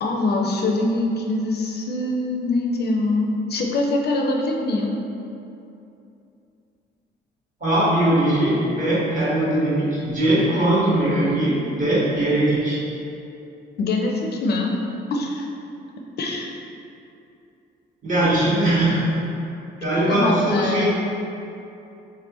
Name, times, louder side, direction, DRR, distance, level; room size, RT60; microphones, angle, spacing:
voice 1, 0.0-5.0 13.8-14.8 15.1-15.5 16.2-16.5 20.1-20.9, left 2 dB, 55° left, 1 dB, 0.5 m, -23 dB
voice 2, 7.6-12.8 18.0-19.1 19.8-20.9, right 1 dB, 40° right, -8 dB, 1.4 m, -20 dB
3.7 x 3.3 x 2.9 m, 2.7 s
cardioid pair, 90°, 20 cm